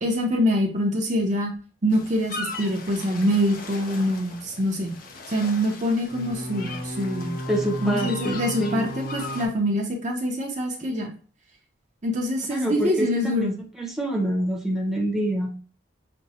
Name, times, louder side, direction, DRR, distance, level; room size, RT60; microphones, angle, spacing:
voice 1, 0.0-1.5 1.8-5.0 5.3-7.3 7.8-11.1 12.0-13.6, equal, 40° right, 1 dB, 0.7 m, -25 dB
sound 1, 1.9-9.5, left 1 dB, 50° left, 0.7 m, -35 dB
voice 2, 7.5-8.9 12.5-15.5, right 1 dB, ahead, -2 dB, 0.8 m, -27 dB
6.0 x 2.2 x 2.7 m, 0.40 s
head